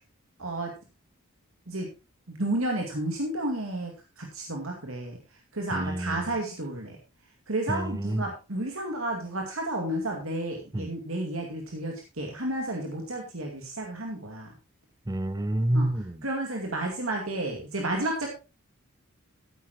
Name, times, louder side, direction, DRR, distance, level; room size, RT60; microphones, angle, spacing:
voice 1, 0.4-0.7 1.7-1.9 2.3-3.9 4.2-5.2 5.5-7.0 7.5-14.5 15.7-15.9 16.2-18.3, right 1 dB, 75° right, 2.4 m, -31 dB
voice 2, 5.7-6.3 7.7-8.3 10.7-10.9 15.1-16.3, right 1 dB, 15° right, 0.5 m, -28 dB
14.0 x 9.7 x 3.0 m
head